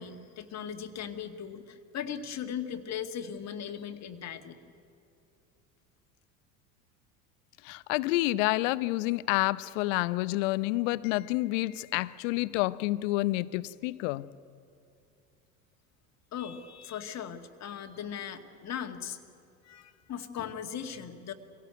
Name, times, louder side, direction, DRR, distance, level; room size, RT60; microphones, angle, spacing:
voice 1, 0.0-4.6 16.3-19.2 19.6-21.3, left 8 dB, 40° left, 1.9 m, -38 dB
voice 2, 7.6-14.3, left 19 dB, 60° left, 0.8 m, -29 dB
24.5 x 17.0 x 9.4 m
hypercardioid pair, 70°, 43 cm